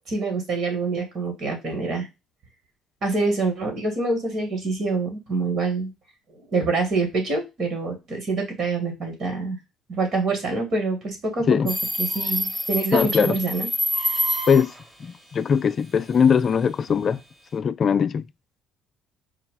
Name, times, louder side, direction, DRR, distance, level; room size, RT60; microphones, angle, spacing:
voice 1, 0.1-2.1 3.0-5.9 6.3-9.6 9.9-13.7, right 3 dB, 55° right, 2.2 m, -26 dB
Subway metro underground, 11.7-14.8, equal, 15° right, 1.3 m, -26 dB
voice 2, 12.9-13.4 14.5-14.7 15.0-17.2 17.5-18.3, left 7 dB, 45° left, 0.3 m, -20 dB
4.7 x 2.3 x 3.8 m
supercardioid pair, 70°, 0 cm